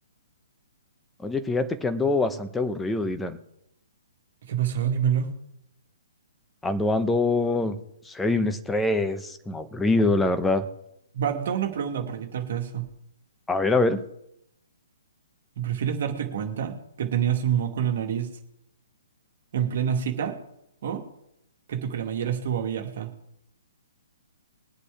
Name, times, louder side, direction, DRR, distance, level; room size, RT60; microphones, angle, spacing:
voice 1, 1.2-3.4 6.6-7.8 8.1-10.7 13.5-14.0, left 2 dB, 5° left, 9 dB, 1.0 m, -24 dB
voice 2, 4.5-5.3 11.1-12.9 15.6-18.3 19.5-20.4 20.8-21.0 21.7-23.1, right 8 dB, 50° right, 5 dB, 2.2 m, -27 dB
21.5 x 8.2 x 3.6 m, 0.79 s
figure-of-eight pair, 125°, 0 cm